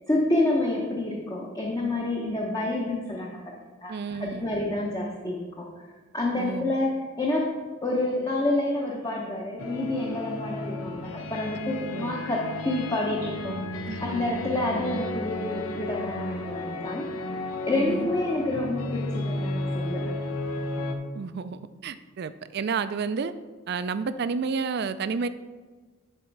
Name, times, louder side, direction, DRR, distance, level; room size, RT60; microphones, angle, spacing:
voice 1, 0.1-3.4 3.8-3.9 4.2-5.6 6.1-6.9 7.2-7.5 7.8-13.6 14.1-17.0 17.7-20.1, left 2 dB, 20° left, -2 dB, 0.7 m, -28 dB
voice 2, 3.9-4.5 6.4-6.7 11.8-12.2 13.9-14.3 17.8-18.1 21.1-23.3 23.7-25.3, right 5 dB, 50° right, 13 dB, 0.3 m, -31 dB
sound 1, 9.6-20.9, left 2 dB, 85° left, 0.8 m, -33 dB
11.0 x 4.2 x 4.6 m, 1.4 s
head